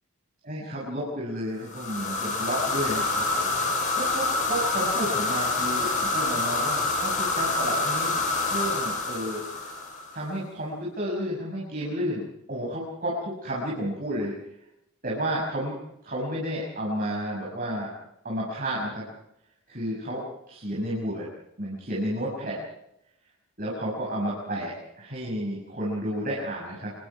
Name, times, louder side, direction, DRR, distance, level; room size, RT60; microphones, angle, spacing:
voice 1, 0.4-9.8 10.1-12.2 12.5-14.3 15.0-15.7 16.0-17.9 18.2-19.1 19.7-21.3 21.6-22.6 23.6-26.9, equal, 40° right, -4 dB, 6.3 m, -31 dB
sound 1, 1.7-10.2, left 3 dB, 35° left, 6.8 m, -27 dB
27.0 x 23.0 x 4.8 m, 0.81 s
head